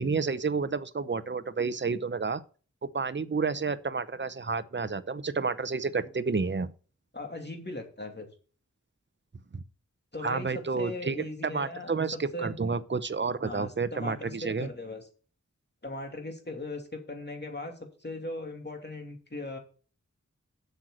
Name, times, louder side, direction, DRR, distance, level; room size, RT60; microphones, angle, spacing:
voice 1, 0.0-2.4 2.8-6.7 10.2-14.7, right 4 dB, 35° right, 0.7 m, -30 dB
voice 2, 7.1-8.3 10.1-12.0 12.3-12.5 13.4-15.1 15.8-17.7 18.0-19.6, left 1 dB, 35° left, 2.7 m, -38 dB
8.0 x 6.5 x 6.0 m
wide cardioid pair, 50°, 31 cm